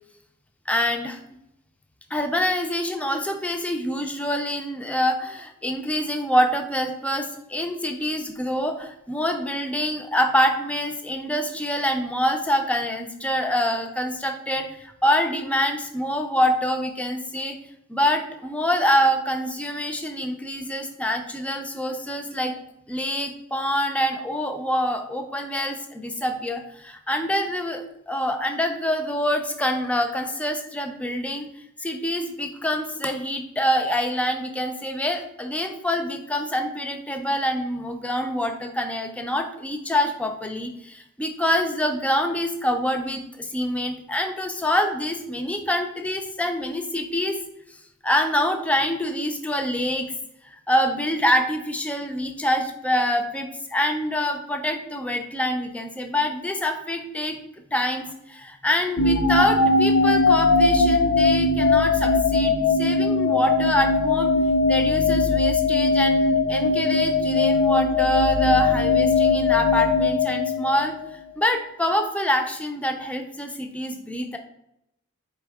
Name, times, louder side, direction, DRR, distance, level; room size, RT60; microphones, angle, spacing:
voice 1, 0.7-1.2 2.1-17.6 17.9-22.5 22.9-31.5 31.8-47.4 48.0-50.1 50.4-57.4 57.7-64.3 64.7-74.4, equal, 5° left, 5 dB, 0.3 m, -25 dB
sound 1, 59.0-71.1, left 3 dB, 80° left, 0.5 m, -20 dB
4.4 x 3.5 x 3.4 m, 0.80 s
head